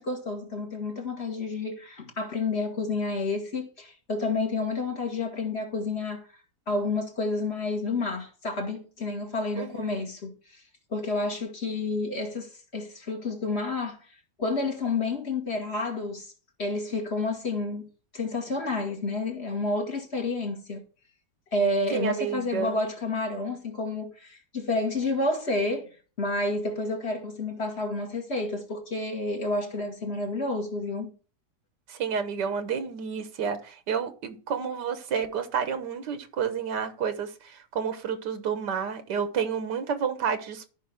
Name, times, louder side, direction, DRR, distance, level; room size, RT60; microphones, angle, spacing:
voice 1, 0.0-6.3 6.7-10.6 10.9-14.1 14.4-16.3 16.6-20.8 21.5-25.9 26.2-31.1, left 2 dB, 40° left, 1.9 m, -30 dB
voice 2, 9.6-10.0 21.9-22.8 31.9-40.7, right 7 dB, 90° right, 1.7 m, -30 dB
14.0 x 5.5 x 3.5 m
omnidirectional pair, 1.8 m